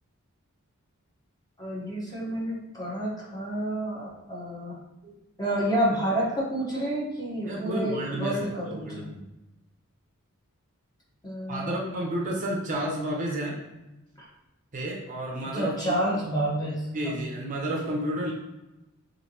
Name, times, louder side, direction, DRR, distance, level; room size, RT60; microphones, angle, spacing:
voice 1, 1.6-4.8 5.4-9.1 11.2-11.9 14.2-14.3 15.5-17.2, right 1 dB, 20° left, -5 dB, 0.9 m, -29 dB
voice 2, 7.4-9.2 11.5-13.6 14.7-15.7 16.9-18.3, right 1 dB, 35° right, -1 dB, 0.6 m, -31 dB
4.3 x 2.6 x 2.8 m, 0.99 s
head